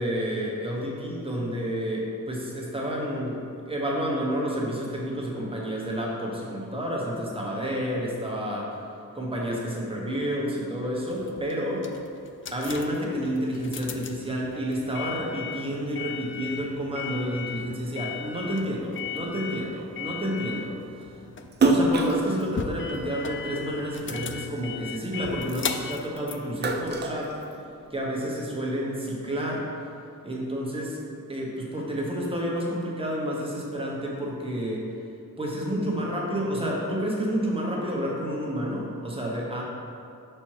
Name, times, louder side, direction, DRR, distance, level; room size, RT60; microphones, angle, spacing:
voice 1, 0.0-8.8 9.1-11.9 12.5-21.1 21.6-27.3 27.9-29.7 30.2-31.0 31.3-34.9 35.4-39.6, equal, 15° right, -4 dB, 1.2 m, -30 dB
sound 1, 11.0-27.4, left 7 dB, 35° left, 0.4 m, -38 dB
Splash splatter, 21.5-24.1 24.5-26.0 26.3-28.1, right 3 dB, 30° right, 0.4 m, -26 dB
5.2 x 4.4 x 4.8 m, 2.5 s
wide cardioid pair, 105°, 35 cm